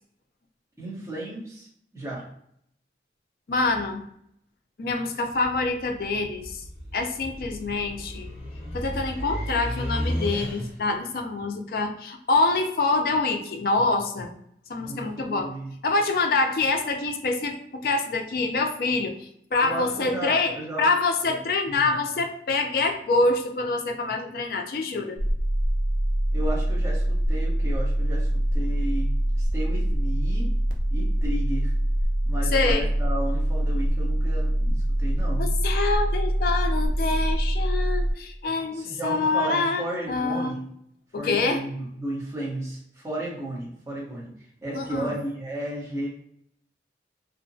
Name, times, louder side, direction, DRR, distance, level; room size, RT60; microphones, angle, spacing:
voice 1, 0.8-2.2 14.8-15.7 19.6-20.8 21.3-21.4 21.6-21.9 26.3-30.5 30.9-31.7 32.3-35.4 38.7-40.7 41.2-44.3 44.6-46.1, right 1 dB, 15° right, -6 dB, 0.9 m, -34 dB
voice 2, 3.5-4.0 4.8-6.6 6.9-8.3 8.7-14.3 14.7-15.5 15.8-25.2 32.5-32.9 35.4-40.6 41.1-41.6 44.7-45.1, left 3 dB, 55° left, 4 dB, 0.4 m, -26 dB
sound 1, 5.3-11.0, equal, 35° left, 1.1 m, -33 dB
sound 2, 25.2-38.1, right 1 dB, 45° right, 0.4 m, -24 dB
2.7 x 2.1 x 2.6 m, 0.71 s
head